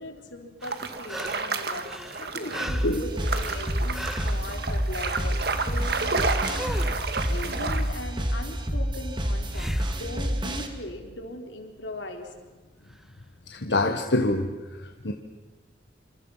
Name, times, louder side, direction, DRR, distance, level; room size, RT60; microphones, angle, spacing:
voice 1, 0.0-6.7 6.9-12.3, left 2 dB, 90° left, 3 dB, 3.7 m, -39 dB
sound 1, 0.6-1.6 1.8-4.4 6.5-7.1 9.5-10.0 12.9-13.0, equal, ahead, 1.5 m, -37 dB
sound 2, 0.6-7.9, right 4 dB, 60° right, 1.8 m, -31 dB
sound 3, 2.7-10.7, equal, 25° right, 2.0 m, -29 dB
voice 2, 13.5-14.5 14.8-15.1, left 2 dB, 70° left, 4 dB, 1.4 m, -25 dB
27.0 x 26.5 x 5.7 m, 1.2 s
head